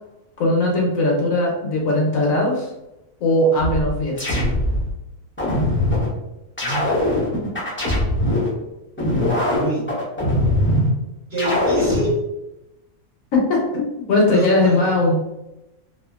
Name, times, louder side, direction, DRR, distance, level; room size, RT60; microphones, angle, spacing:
voice 1, 0.4-2.7 3.2-4.3 13.3-15.2, left 2 dB, 70° left, -1 dB, 1.0 m, -19 dB
sound 1, 3.6-4.9 5.4-6.1 6.6-8.5 9.0-10.9 11.4-12.1, left 1 dB, 15° left, 0.4 m, -21 dB
voice 2, 6.6-7.0 9.5-9.9 11.3-12.2 14.3-14.9, right 1 dB, 45° right, -8 dB, 1.3 m, -26 dB
2.7 x 2.3 x 2.3 m, 0.93 s
omnidirectional pair, 1.5 m